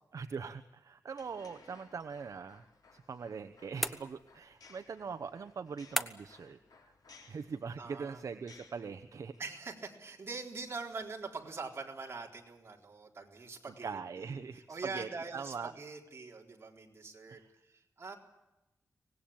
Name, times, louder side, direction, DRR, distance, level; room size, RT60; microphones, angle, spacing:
voice 1, 0.1-2.7 2.9-6.9 7.3-9.3 13.8-15.7 17.3-17.5, right 5 dB, 60° right, 10 dB, 1.0 m, -42 dB
sound 1, 1.2-9.4, left 4 dB, 90° left, 4.2 m, -61 dB
sound 2, 3.8-4.5 6.0-6.5, equal, ahead, 1.1 m, -36 dB
voice 2, 7.8-8.2 9.4-14.4 14.7-18.2, right 4 dB, 40° right, 1 dB, 4.1 m, -44 dB
25.0 x 19.0 x 8.8 m, 0.97 s
wide cardioid pair, 160°, 6 cm